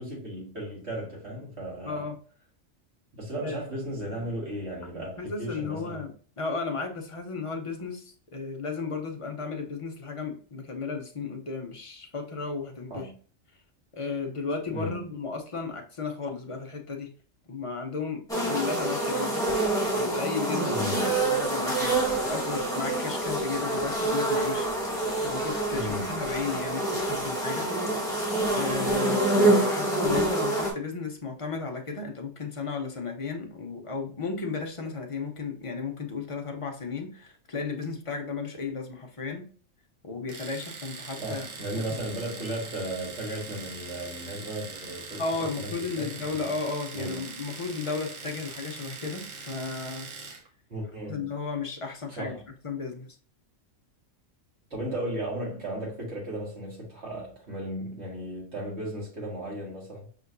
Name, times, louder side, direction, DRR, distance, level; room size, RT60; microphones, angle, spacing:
voice 1, 0.0-2.0 3.1-6.0 12.9-13.1 14.7-15.1 20.7-21.1 25.7-26.2 41.2-45.2 45.6-46.5 46.9-47.2 50.7-51.3 52.1-52.4 54.7-60.1, right 1 dB, 55° right, 2.0 m, -35 dB
voice 2, 1.8-2.2 3.4-3.6 4.9-13.1 13.9-17.1 17.5-19.5 19.9-24.7 25.2-28.2 28.5-39.5 40.0-41.5 41.7-41.8 45.2-50.1 51.1-52.3 52.6-53.2, left 4 dB, 40° left, 0.5 m, -34 dB
sound 1, 18.3-30.7, right 2 dB, 5° left, 1.2 m, -26 dB
Domestic sounds home sounds, 40.3-50.5, right 4 dB, 75° right, 1.2 m, -42 dB
5.5 x 2.9 x 2.5 m
omnidirectional pair, 1.4 m